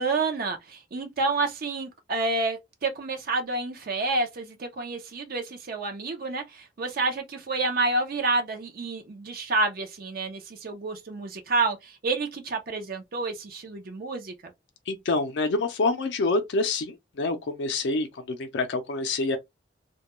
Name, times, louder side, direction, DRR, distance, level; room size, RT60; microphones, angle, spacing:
voice 1, 0.0-14.3, right 3 dB, 55° right, 0.5 m, -29 dB
voice 2, 14.9-19.4, left 3 dB, 70° left, 0.4 m, -27 dB
2.2 x 2.1 x 2.9 m
head